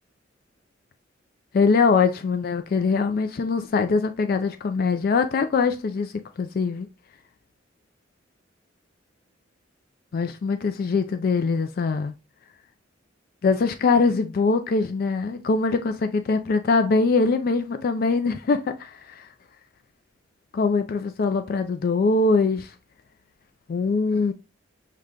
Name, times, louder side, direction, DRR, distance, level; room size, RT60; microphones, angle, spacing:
voice 1, 1.5-6.9 10.1-12.1 13.4-19.3 20.5-22.7 23.7-24.3, left 4 dB, 50° left, 0.3 m, -22 dB
6.5 x 2.2 x 3.6 m
head